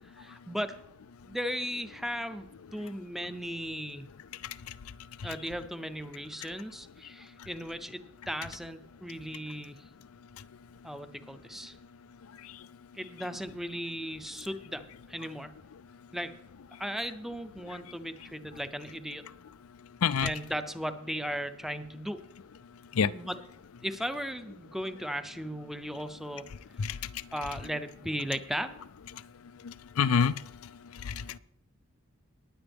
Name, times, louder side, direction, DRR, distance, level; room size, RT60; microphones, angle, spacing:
voice 1, 0.2-0.8 1.2-4.1 5.2-9.8 10.8-11.8 12.9-15.5 16.1-16.3 16.8-19.2 20.2-22.2 23.1-23.4 23.8-26.4 27.3-28.7, equal, ahead, 10 dB, 0.6 m, -36 dB
voice 2, 20.0-20.3 22.9-23.1 26.8-27.0 29.1-29.2 29.6-30.4 30.9-31.4, left 6 dB, 90° left, 15 dB, 0.5 m, -28 dB
19.5 x 7.9 x 3.5 m, 0.74 s
head